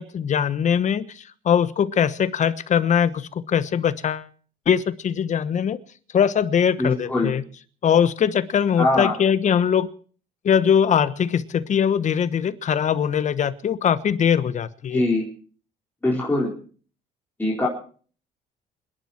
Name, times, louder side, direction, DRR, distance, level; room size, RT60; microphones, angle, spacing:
voice 1, 0.0-4.3 4.7-5.8 6.1-7.4 7.8-9.9 10.4-15.0, left 8 dB, 45° left, 14 dB, 1.2 m, -21 dB
voice 2, 6.8-7.3 8.8-9.1 14.9-15.3 16.0-16.5 17.4-17.7, left 2 dB, 10° left, -4 dB, 4.6 m, -22 dB
27.5 x 11.0 x 4.4 m, 0.43 s
cardioid pair, 110°, 17 cm